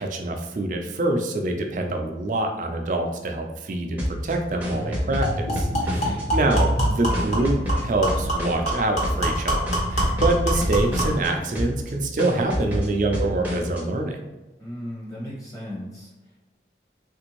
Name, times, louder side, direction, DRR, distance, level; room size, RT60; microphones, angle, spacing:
voice 1, 0.0-14.2, right 2 dB, 45° right, 3 dB, 0.4 m, -26 dB
sound 1, 4.0-6.2 6.5-8.7 9.0-9.4 9.7-11.3 11.5-11.9 12.2-13.8, equal, 10° right, 0.6 m, -28 dB
sound 2, 4.3-4.4 4.7-4.8 5.2-11.2, equal, 40° left, 1.0 m, -25 dB
voice 2, 5.8-6.3 14.6-16.5, equal, 20° left, -5 dB, 0.9 m, -37 dB
3.4 x 2.5 x 3.0 m, 1.1 s
head